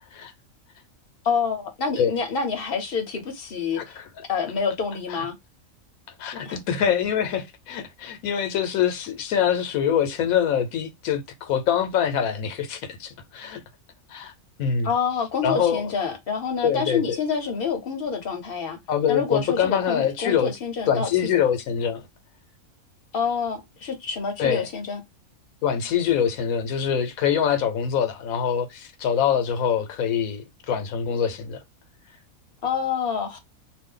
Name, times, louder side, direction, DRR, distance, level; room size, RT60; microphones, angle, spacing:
voice 1, 1.2-4.0 4.3-5.4 6.4-6.6 14.8-18.8 19.1-21.5 23.1-25.0 32.6-33.4, left 6 dB, 50° left, 0.9 m, -27 dB
voice 2, 6.2-13.6 14.1-14.3 14.6-14.9 15.4-15.8 16.6-17.0 18.9-20.5 20.9-22.0 24.4-24.6 25.6-31.6, left 8 dB, 75° left, 1.1 m, -24 dB
2.6 x 2.3 x 3.7 m
omnidirectional pair, 1.5 m